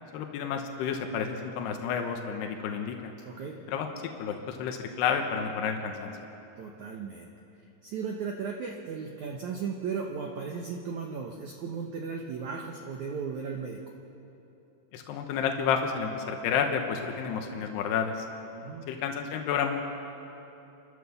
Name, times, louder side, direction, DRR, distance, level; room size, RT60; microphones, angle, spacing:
voice 1, 0.1-3.1 3.7-3.9 4.2-6.2 14.9-18.3 18.9-19.8, left 7 dB, 85° left, 4 dB, 3.2 m, -30 dB
voice 2, 3.2-3.6 6.6-7.3 7.8-13.8 18.5-18.9, right 5 dB, 65° right, 1 dB, 1.9 m, -36 dB
29.5 x 12.5 x 7.0 m, 3.0 s
omnidirectional pair, 4.7 m